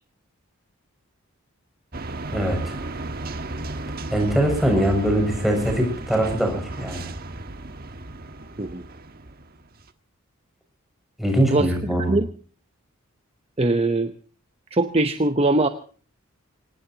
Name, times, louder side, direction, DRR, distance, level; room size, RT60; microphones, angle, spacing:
sound 1, 1.9-9.9, right 2 dB, 45° right, 1.4 m, -34 dB
voice 1, 2.3-2.8 4.1-7.1 11.2-12.2, right 1 dB, ahead, 1 dB, 6.8 m, -22 dB
voice 2, 11.5-12.3 13.6-14.1 14.7-15.7, right 2 dB, 30° right, 8 dB, 0.9 m, -22 dB
25.0 x 19.0 x 2.9 m, 0.42 s
head